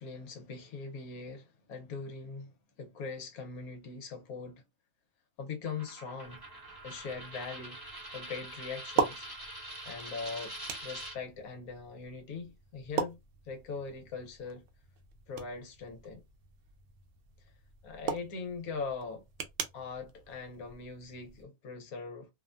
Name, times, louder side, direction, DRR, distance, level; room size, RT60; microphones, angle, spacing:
voice 1, 0.0-4.6 5.4-6.4 6.8-7.8 8.1-9.6 9.8-10.5 10.8-13.2 13.4-14.6 15.3-16.2 17.8-19.2 19.7-22.3, left 4 dB, 75° left, 1.2 m, -41 dB
Coin (dropping), 5.6-11.2, right 1 dB, 20° right, 0.6 m, -44 dB
sound 1, 6.2-21.4, right 6 dB, 70° right, 0.8 m, -41 dB
2.8 x 2.1 x 2.4 m
omnidirectional pair, 1.6 m